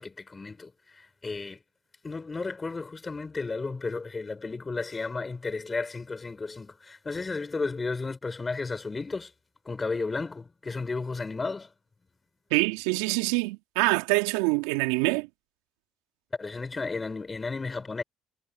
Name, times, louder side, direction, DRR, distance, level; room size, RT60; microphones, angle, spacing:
voice 1, 0.0-1.6 2.0-9.3 9.6-11.7 16.4-18.0, left 3 dB, 30° left, 5.9 m, -33 dB
voice 2, 12.5-15.3, right 26 dB, 80° right, 3.3 m, -25 dB
hypercardioid pair, 55°, 0 cm